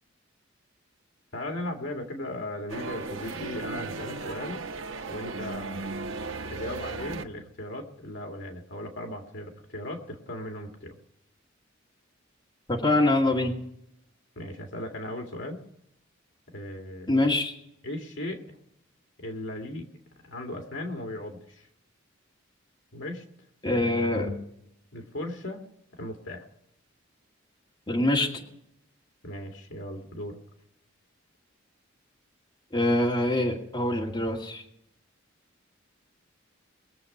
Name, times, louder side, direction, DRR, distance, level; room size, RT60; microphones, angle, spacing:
voice 1, 1.3-4.6 5.1-6.2 6.5-11.0 14.4-15.6 16.5-17.2 17.8-18.6 19.2-19.9 20.2-21.7 22.9-23.2 24.9-25.6 25.9-26.4 29.2-30.4, left 1 dB, 65° left, 3 dB, 2.2 m, -37 dB
sound 1, 2.7-7.2, right 3 dB, 70° right, 1.0 m, -36 dB
voice 2, 12.7-13.5 17.1-17.5 23.6-24.4 27.9-28.4 32.7-34.6, left 1 dB, 20° left, 0 dB, 2.0 m, -24 dB
22.5 x 7.5 x 5.5 m, 0.76 s
head